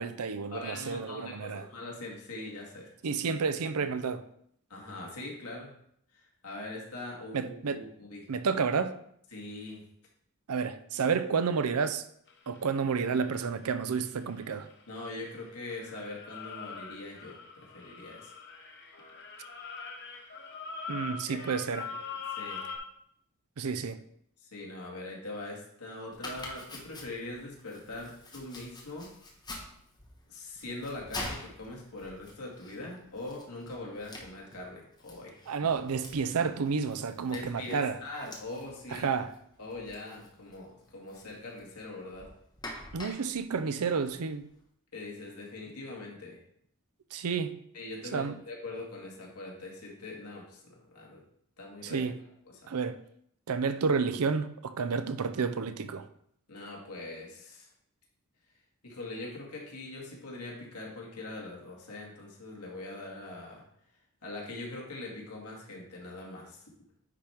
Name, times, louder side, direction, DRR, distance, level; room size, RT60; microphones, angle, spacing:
voice 1, 0.0-1.6 3.0-4.2 7.3-7.8 8.3-8.9 10.5-12.0 12.5-14.7 20.9-21.9 23.6-24.0 35.5-38.0 38.9-39.3 42.9-44.5 47.1-47.6 48.1-48.4 51.8-52.2 52.7-53.0 53.5-56.1, right 5 dB, 80° right, 0.5 m, -30 dB
voice 2, 0.5-2.9 4.7-5.7 6.1-8.3 9.3-9.8 14.9-18.3 21.3-21.5 22.1-22.7 24.4-29.1 30.3-35.4 37.3-39.1 39.6-42.3 44.9-46.4 47.7-51.2 51.6-52.1 52.5-52.7 56.5-57.7 58.8-63.6 64.2-66.6, left 2 dB, 90° left, 2.1 m, -42 dB
sound 1, 12.3-15.4 15.7-22.8, left 5 dB, 50° left, 1.0 m, -42 dB
Domestic sounds home sounds, 26.1-44.6, left 1 dB, 20° left, 1.3 m, -47 dB
9.9 x 3.5 x 4.4 m
head